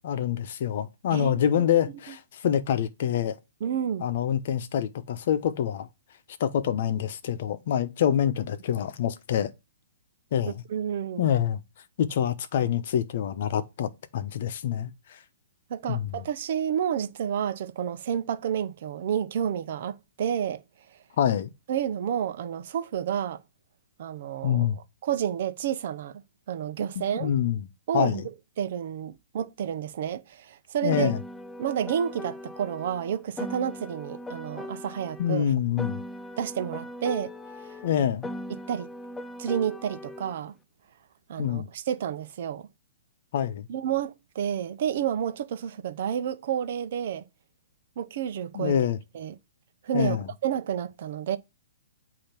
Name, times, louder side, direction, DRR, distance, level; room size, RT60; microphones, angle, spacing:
voice 1, 0.0-3.4 4.0-5.9 6.4-9.5 10.3-10.6 11.2-11.6 12.0-14.9 15.9-16.2 21.2-21.5 24.4-24.8 27.2-27.6 27.9-28.2 30.8-31.2 35.2-36.0 37.8-38.3 41.4-41.7 43.3-43.7 48.5-49.0 49.9-50.3, left 9 dB, 55° left, 0.9 m, -26 dB
voice 2, 1.1-1.6 2.1-2.2 3.6-4.1 10.5-11.3 15.7-20.6 21.7-23.4 24.0-24.7 25.0-26.2 26.5-27.3 27.9-28.2 28.6-31.1 31.6-35.5 36.4-37.3 37.6-37.8 38.5-38.9 39.4-40.5 41.3-42.7 43.7-47.2 48.0-48.8 49.1-49.4 49.8-50.2 50.4-51.4, right 9 dB, 50° right, 0.8 m, -30 dB
Piano, 30.9-35.4 35.8-40.4, left 1 dB, 10° left, 0.3 m, -39 dB
8.7 x 2.9 x 5.9 m
hypercardioid pair, 150°, 0 cm